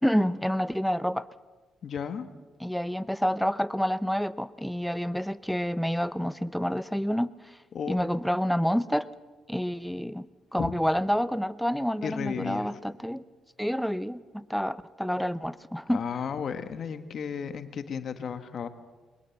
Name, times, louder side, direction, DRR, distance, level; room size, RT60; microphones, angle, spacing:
voice 1, 0.0-1.3 2.6-7.3 7.9-9.1 9.5-10.3 10.5-13.2 13.6-16.0, equal, ahead, 15 dB, 0.8 m, -28 dB
voice 2, 1.8-2.3 7.7-8.0 10.6-10.7 12.0-12.7 15.9-18.7, left 7 dB, 55° left, 10 dB, 1.5 m, -34 dB
22.0 x 21.0 x 7.2 m, 1.3 s
cardioid pair, 90°, 0 cm